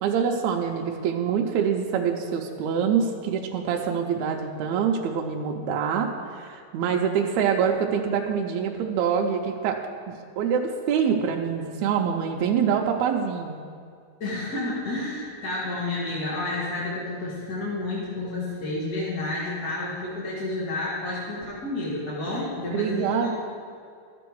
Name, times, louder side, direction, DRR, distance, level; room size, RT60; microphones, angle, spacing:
voice 1, 0.0-9.8 10.1-13.6 22.7-23.3, right 7 dB, 80° right, 1 dB, 1.8 m, -25 dB
voice 2, 14.2-23.3, left 2 dB, 40° left, -7 dB, 1.5 m, -30 dB
12.5 x 6.9 x 4.6 m, 2.2 s
omnidirectional pair, 3.5 m